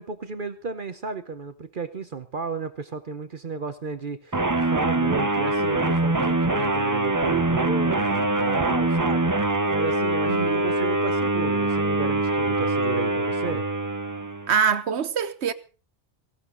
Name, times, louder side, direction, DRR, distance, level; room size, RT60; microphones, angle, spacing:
voice 1, 0.0-13.7, right 5 dB, 50° right, 1.0 m, -33 dB
sound 1, 4.3-14.6, right 2 dB, 20° right, 0.8 m, -24 dB
voice 2, 10.3-10.6 14.5-15.5, right 7 dB, 65° right, 1.2 m, -24 dB
18.0 x 16.0 x 3.9 m
omnidirectional pair, 1.2 m